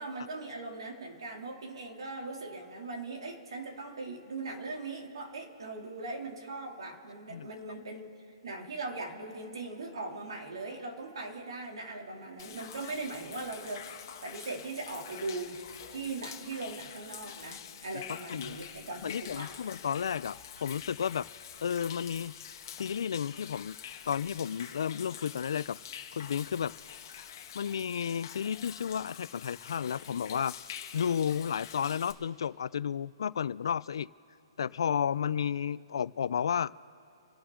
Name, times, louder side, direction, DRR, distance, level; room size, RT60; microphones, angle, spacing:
voice 1, 0.0-8.1 8.4-15.6 15.9-19.5, right 3 dB, 70° right, 1 dB, 2.8 m, -40 dB
Human voice / Rain / Stream, 12.4-32.1, left 9 dB, 35° left, 1.4 m, -46 dB
voice 2, 18.3-18.6 19.0-21.3 21.6-22.4 22.8-23.8 24.1-25.8 26.1-26.7 27.5-30.5 30.9-34.1 34.6-36.8, left 8 dB, 60° left, 19 dB, 0.4 m, -32 dB
28.0 x 11.5 x 3.8 m, 2.9 s
hypercardioid pair, 175°, 3 cm